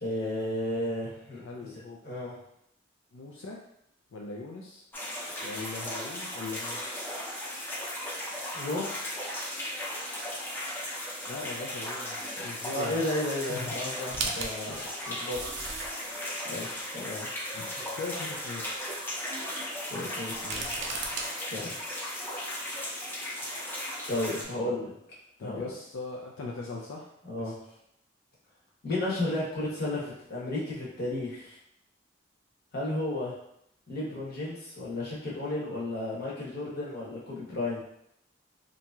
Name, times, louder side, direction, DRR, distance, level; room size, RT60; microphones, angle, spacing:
voice 1, 0.0-1.4 2.0-2.4 8.5-9.0 12.7-15.4 16.4-17.3 19.9-20.7 21.5-21.7 24.1-24.9 25.4-25.7 27.3-27.5 28.8-31.6 32.7-33.3 33.9-37.8, left 1 dB, 55° left, -6 dB, 1.0 m, -33 dB
voice 2, 1.4-2.1 3.1-3.6 4.1-4.8 5.4-7.0 11.3-13.1 13.5-13.8 17.5-18.7 24.3-24.9 25.4-27.5, left 3 dB, 90° left, -2 dB, 0.4 m, -40 dB
sound 1, 4.9-24.4, left 1 dB, 10° left, 0.5 m, -36 dB
sound 2, 14.1-16.1 16.8-16.9 20.3-21.3, right 4 dB, 65° right, 0.4 m, -35 dB
2.9 x 2.6 x 2.2 m, 0.76 s
head